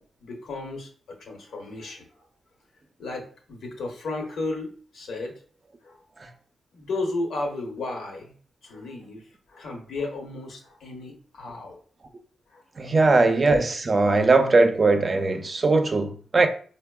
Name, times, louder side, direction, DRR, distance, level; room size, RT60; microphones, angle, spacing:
voice 1, 0.2-2.1 3.0-5.3 5.8-6.0 6.7-8.3 8.6-11.8 12.5-12.6, left 2 dB, 85° left, 0.9 m, -34 dB
voice 2, 12.8-16.5, right 3 dB, 40° right, 0.5 m, -20 dB
4.5 x 2.0 x 2.2 m
cardioid pair, 75°, 0 cm